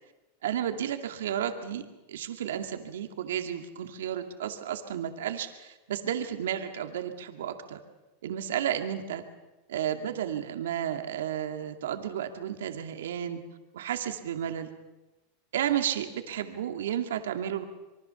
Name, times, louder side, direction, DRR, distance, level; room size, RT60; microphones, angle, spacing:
voice 1, 0.4-1.8 2.1-7.8 8.2-9.2 9.7-13.4 13.7-14.7 15.5-17.6, right 10 dB, 90° right, 6 dB, 2.2 m, -32 dB
26.5 x 23.0 x 7.1 m, 1.1 s
supercardioid pair, 130°, 0 cm